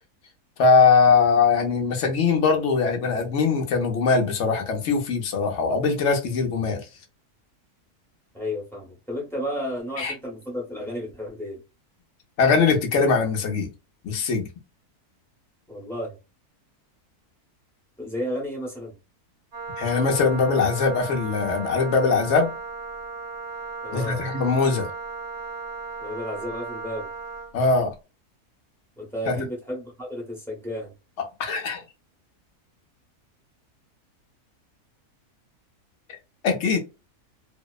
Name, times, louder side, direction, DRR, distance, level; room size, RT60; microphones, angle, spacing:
voice 1, 0.6-6.8 10.0-10.1 12.4-13.7 14.0-14.5 19.8-22.5 23.9-24.9 27.5-27.9 29.3-29.4 31.4-31.8 36.4-36.8, left 4 dB, 60° left, 0.8 m, -21 dB
voice 2, 8.3-11.6 15.7-16.1 18.0-18.9 23.8-24.3 26.0-27.1 29.0-30.9, equal, ahead, 0.7 m, -32 dB
Wind instrument woodwind instrument, 19.5-27.5, right 4 dB, 50° right, 1.2 m, -36 dB
2.7 x 2.0 x 2.2 m
omnidirectional pair, 1.6 m